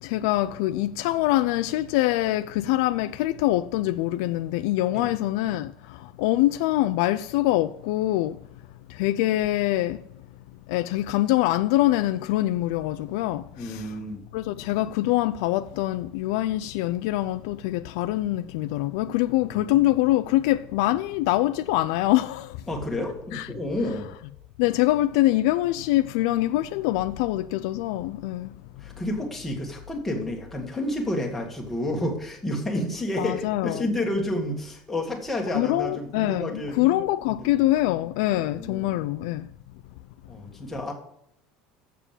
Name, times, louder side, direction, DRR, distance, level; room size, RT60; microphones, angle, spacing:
voice 1, 0.0-8.4 8.9-10.0 10.7-14.0 14.3-22.6 23.3-23.5 24.6-28.6 33.2-33.9 35.5-39.5, left 15 dB, 70° left, 0.4 m, -24 dB
voice 2, 13.5-14.2 19.4-19.8 22.7-24.1 28.8-36.8 37.3-37.5 38.3-39.0 40.3-40.9, left 1 dB, 5° left, 1.5 m, -30 dB
7.3 x 6.9 x 7.2 m
cardioid pair, 165°, 3 cm